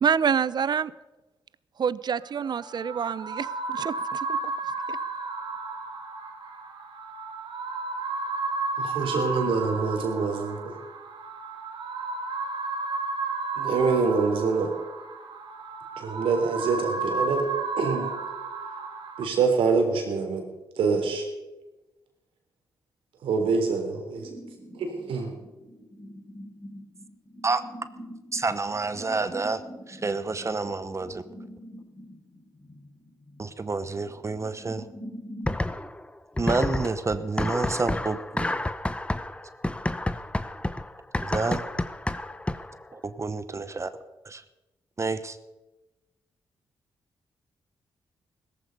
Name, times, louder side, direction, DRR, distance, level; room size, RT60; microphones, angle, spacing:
voice 1, 0.0-0.9 1.8-4.4 4.9-5.0, right 7 dB, 55° right, 18 dB, 0.6 m, -27 dB
sound 1, 2.2-19.2, right 3 dB, 70° right, 2.7 m, -33 dB
voice 2, 8.8-10.8 13.6-14.7 16.0-17.5 17.8-18.1 19.2-20.4 20.8-21.3 23.2-24.3 24.7-25.3, right 4 dB, 85° right, 3 dB, 3.7 m, -25 dB
sound 2, 24.2-35.6, equal, 35° left, 4.3 m, -45 dB
voice 3, 28.3-31.2 33.4-34.9 36.4-38.6 41.2-41.7 42.9-43.9 44.2-44.4 45.0-45.4, right 3 dB, 35° right, 12 dB, 1.1 m, -29 dB
sound 3, 35.5-36.1 36.4-42.8, left 1 dB, 15° left, 0.9 m, -30 dB
17.0 x 14.5 x 5.4 m, 1.1 s
cardioid pair, 65°, 9 cm